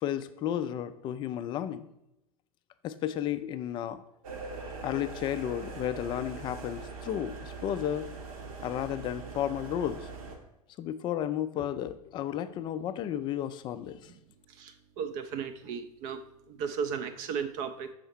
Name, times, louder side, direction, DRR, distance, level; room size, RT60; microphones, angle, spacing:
voice 1, 0.0-1.9 2.8-4.0 4.6-8.1 8.6-10.1 10.8-14.1, left 10 dB, 25° left, 12 dB, 0.3 m, -33 dB
sound 1, 4.2-10.4, right 4 dB, 65° right, 1.1 m, -42 dB
voice 2, 14.5-16.2 16.5-17.9, right 7 dB, 40° right, 9 dB, 0.5 m, -35 dB
5.5 x 4.2 x 4.5 m, 0.85 s
figure-of-eight pair, 90°, 20 cm